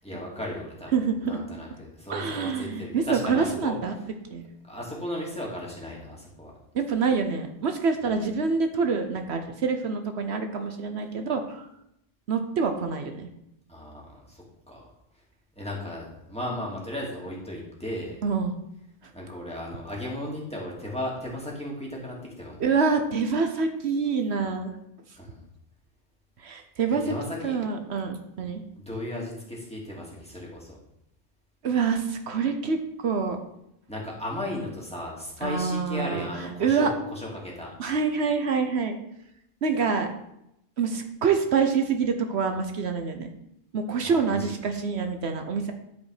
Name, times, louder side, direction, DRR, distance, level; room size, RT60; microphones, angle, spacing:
voice 1, 0.0-0.9 1.2-3.8 4.7-6.5 8.0-8.2 13.7-14.9 15.6-18.2 19.1-22.6 25.2-25.5 27.0-27.6 28.4-30.8 33.9-37.7 44.0-44.5, left 1 dB, 5° left, -4 dB, 2.6 m, -35 dB
voice 2, 0.9-1.4 2.1-3.9 4.3-4.5 6.7-11.7 12.3-13.3 18.2-18.5 22.6-24.7 26.4-27.1 27.4-28.6 31.6-33.4 35.4-36.3 36.6-36.9 37.8-38.9 39.6-40.1 40.8-43.3 43.7-45.7, right 5 dB, 75° right, 6 dB, 1.2 m, -26 dB
11.5 x 5.2 x 5.0 m, 0.80 s
omnidirectional pair, 1.1 m